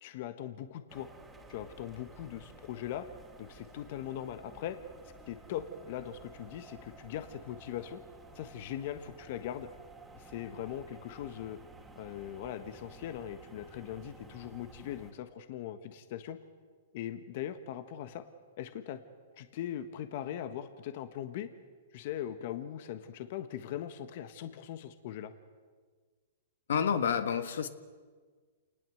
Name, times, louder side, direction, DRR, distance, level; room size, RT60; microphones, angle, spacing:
voice 1, 0.0-1.1 1.5-3.1 3.4-4.8 5.3-8.0 8.3-9.7 10.1-11.6 11.9-16.4 16.9-18.2 18.6-19.0 19.4-21.5 21.9-25.3, left 10 dB, 55° left, 10 dB, 1.4 m, -40 dB
sound 1, 0.9-15.1, right 2 dB, 10° right, 2.9 m, -53 dB
voice 2, 26.7-27.7, left 7 dB, 80° left, 10 dB, 1.7 m, -29 dB
28.0 x 20.0 x 8.0 m, 1.5 s
hypercardioid pair, 140°, 0 cm